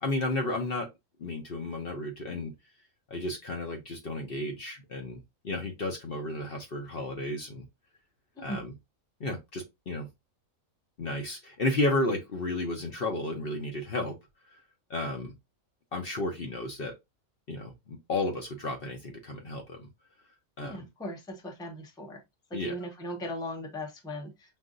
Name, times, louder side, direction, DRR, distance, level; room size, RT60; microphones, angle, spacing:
voice 1, 0.0-0.9 1.2-2.5 3.1-7.6 8.4-8.7 9.2-10.1 11.0-14.2 14.9-15.3 15.9-16.9 17.5-19.9 20.6-20.8 22.5-22.7, left 2 dB, 50° left, 0.9 m, -32 dB
voice 2, 8.4-8.7 20.6-22.2 22.5-24.6, equal, 5° left, 0.6 m, -38 dB
5.5 x 2.6 x 2.5 m
omnidirectional pair, 1.5 m